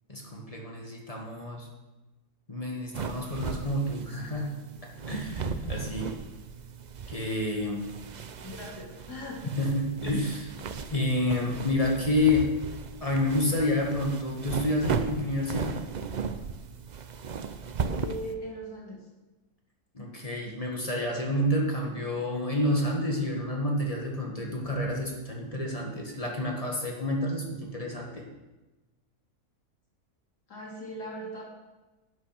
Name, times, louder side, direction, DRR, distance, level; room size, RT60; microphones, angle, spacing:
voice 1, 0.1-1.7 2.5-4.6 5.1-6.1 7.1-7.9 9.6-10.5 10.9-12.5 13.0-15.7 19.9-28.2, left 1 dB, 20° left, -1 dB, 2.0 m, -29 dB
sound 1, 2.9-18.3, right 5 dB, 80° right, 0.4 m, -36 dB
voice 2, 8.4-9.4 18.0-19.0 30.5-31.4, equal, 80° left, -3 dB, 3.5 m, -39 dB
11.5 x 8.8 x 6.0 m, 1.1 s
omnidirectional pair, 1.7 m